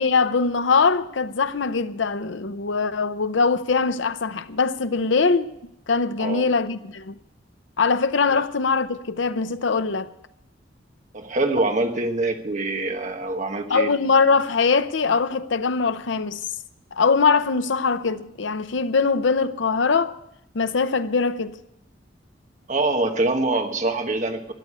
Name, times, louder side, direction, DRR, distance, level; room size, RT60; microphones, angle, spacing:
voice 1, 0.0-5.5 5.9-7.2 7.8-10.1 13.7-16.4 16.9-20.2 20.5-21.6, left 4 dB, 85° left, 0.7 m, -22 dB
voice 2, 6.2-6.5 11.1-13.9 22.7-24.5, right 2 dB, 40° right, 1.3 m, -24 dB
13.0 x 9.3 x 8.3 m
head